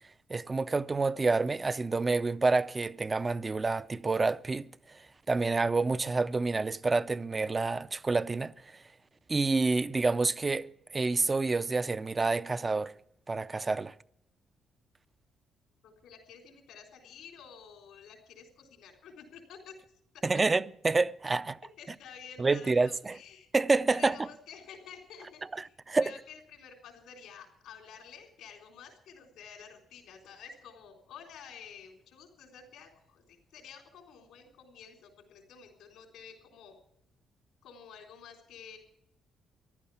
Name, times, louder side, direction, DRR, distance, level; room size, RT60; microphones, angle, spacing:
voice 1, 0.3-4.7 5.3-8.5 9.3-12.9 13.3-13.9 20.2-21.6 22.4-23.2 23.5-24.2 25.5-26.1, right 3 dB, 25° right, 0.5 m, -28 dB
voice 2, 15.8-19.7 20.1-20.2 21.8-23.5 23.9-36.7 37.6-38.8, left 7 dB, 90° left, 3.7 m, -51 dB
14.5 x 11.5 x 7.0 m
cardioid pair, 90°, 0 cm